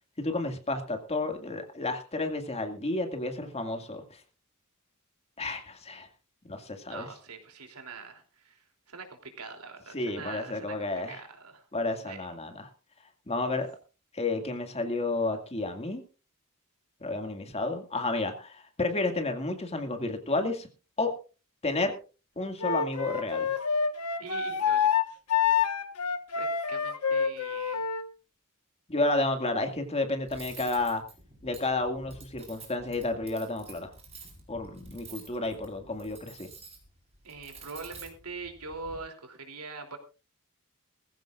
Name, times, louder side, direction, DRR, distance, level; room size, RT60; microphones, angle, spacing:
voice 1, 0.2-4.0 5.4-6.1 6.5-7.1 9.9-11.2 11.7-12.7 13.3-13.7 14.1-16.0 17.0-20.7 21.0-21.1 21.6-21.9 22.4-23.5 28.9-31.0 31.4-33.9 34.5-36.5, left 2 dB, 30° left, 5 dB, 2.1 m, -31 dB
voice 2, 6.9-11.7 12.1-12.3 24.2-24.9 26.3-27.8 37.2-40.0, right 4 dB, 85° right, 4 dB, 3.2 m, -43 dB
Wind instrument woodwind instrument, 22.6-28.0, left 7 dB, 80° left, 1.4 m, -27 dB
Cutlery silverware, 30.3-39.0, right 4 dB, 30° right, 4.8 m, -49 dB
20.0 x 15.0 x 2.5 m, 0.34 s
head